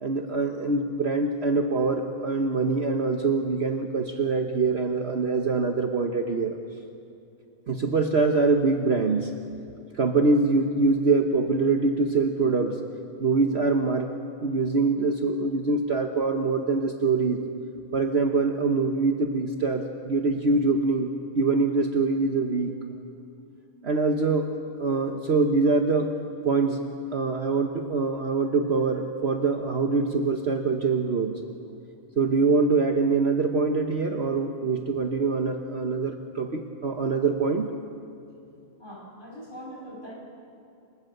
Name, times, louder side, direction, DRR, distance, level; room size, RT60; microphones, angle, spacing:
voice 1, 0.0-6.6 7.7-9.3 9.9-12.8 13.2-14.1 14.4-17.4 17.9-22.7 23.8-24.5 24.8-26.1 26.4-26.8 27.1-31.4 32.2-37.7, right 3 dB, 45° right, 4 dB, 1.3 m, -24 dB
voice 2, 38.8-40.1, equal, 35° left, -3 dB, 7.9 m, -41 dB
29.0 x 24.5 x 6.7 m, 2.6 s
omnidirectional pair, 1.6 m